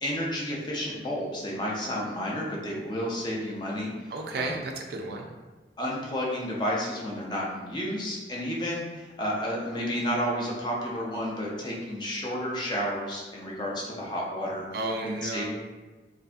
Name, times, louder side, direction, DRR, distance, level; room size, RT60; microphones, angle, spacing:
voice 1, 0.0-3.9 4.3-4.6 5.8-14.6 15.2-15.4, equal, 25° left, -3 dB, 0.5 m, -31 dB
voice 2, 4.1-5.3 14.7-15.4, right 2 dB, 60° right, 2 dB, 0.3 m, -32 dB
2.6 x 2.4 x 2.3 m, 1.2 s
head